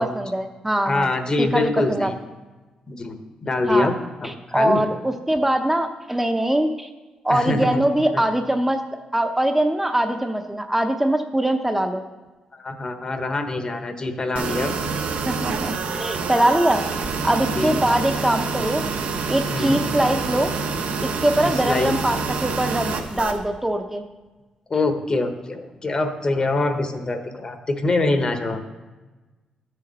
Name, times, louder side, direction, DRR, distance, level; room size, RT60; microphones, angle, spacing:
voice 1, 0.0-1.1 1.4-2.1 3.7-3.9 4.2-6.9 7.2-8.8 9.1-12.0 15.2-16.8 17.2-18.8 19.3-20.5 21.0-24.0, right 1 dB, 10° right, 5 dB, 0.7 m, -22 dB
voice 2, 0.8-2.1 2.9-4.8 7.3-7.8 8.1-8.2 12.5-14.7 17.5-17.8 19.5-19.8 21.4-22.0 24.7-28.6, left 2 dB, 35° left, 6 dB, 1.2 m, -24 dB
sound 1, 14.4-23.4, right 4 dB, 75° right, 1.1 m, -27 dB
12.5 x 6.7 x 4.1 m, 1.2 s
cardioid pair, 80°, 2 cm